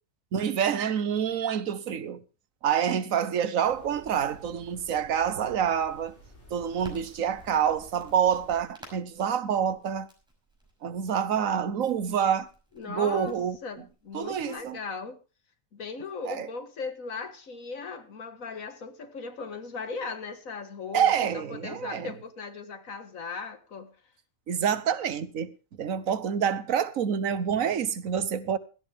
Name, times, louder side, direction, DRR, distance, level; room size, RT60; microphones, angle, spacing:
voice 1, 0.3-2.2 2.6-6.2 6.5-10.1 10.8-12.5 12.9-13.6 14.1-14.8 16.3-16.5 20.9-22.1 24.5-25.5 25.8-28.6, right 8 dB, 85° right, 1.4 m, -27 dB
sound 1, 3.6-8.6, left 1 dB, 55° left, 4.9 m, -53 dB
Crackle, 6.8-14.7, equal, 5° right, 5.6 m, -54 dB
voice 2, 12.8-13.4 13.6-15.2 15.7-23.9, left 4 dB, 85° left, 2.0 m, -38 dB
17.0 x 12.5 x 3.5 m
omnidirectional pair, 1.4 m